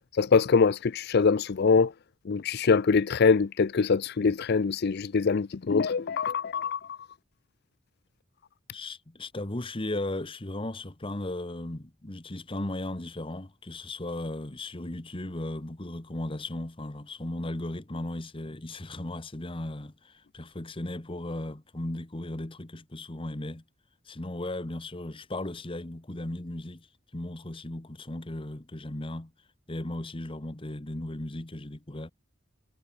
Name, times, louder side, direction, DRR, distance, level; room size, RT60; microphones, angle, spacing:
voice 1, 0.1-1.9 2.3-7.0, left 5 dB, 55° left, 0.5 m, -24 dB
voice 2, 8.7-23.6 24.1-26.9 27.1-29.3 29.7-32.1, left 1 dB, 25° left, 1.2 m, -36 dB
head